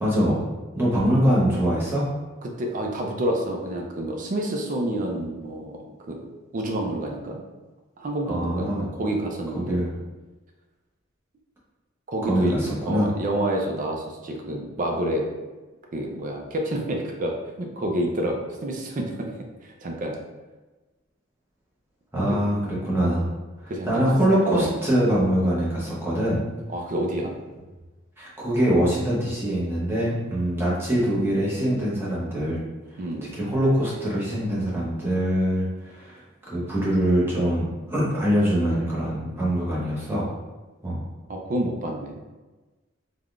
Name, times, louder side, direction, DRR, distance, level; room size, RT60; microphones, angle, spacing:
voice 1, 0.0-0.5 0.7-2.1 8.2-8.8 9.7-9.9 12.3-13.1 22.1-23.3 23.8-26.4 28.2-32.6 33.3-36.2 36.5-40.3 40.8-41.0, equal, 10° right, -7 dB, 0.8 m, -23 dB
voice 2, 2.4-5.8 6.1-6.2 6.5-7.4 8.0-9.8 12.1-12.6 12.8-15.3 15.9-19.3 19.6-20.2 22.3-22.4 23.7-24.1 24.4-24.7 26.7-27.4 33.0-33.3 41.3-42.2, right 1 dB, 40° right, 2 dB, 0.4 m, -28 dB
3.4 x 2.2 x 2.4 m, 1.2 s
head